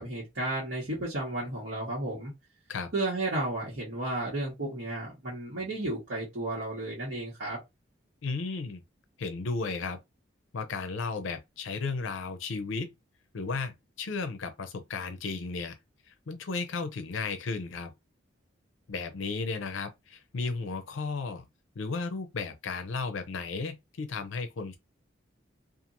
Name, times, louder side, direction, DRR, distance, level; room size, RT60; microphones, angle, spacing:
voice 1, 0.0-2.3 2.9-7.6, right 2 dB, 75° right, 1.2 m, -33 dB
voice 2, 8.2-8.8 9.2-10.0 10.5-12.9 13.3-15.8 16.1-17.9 18.9-21.5 21.8-24.8, left 4 dB, 80° left, 0.5 m, -34 dB
2.9 x 2.4 x 2.6 m
head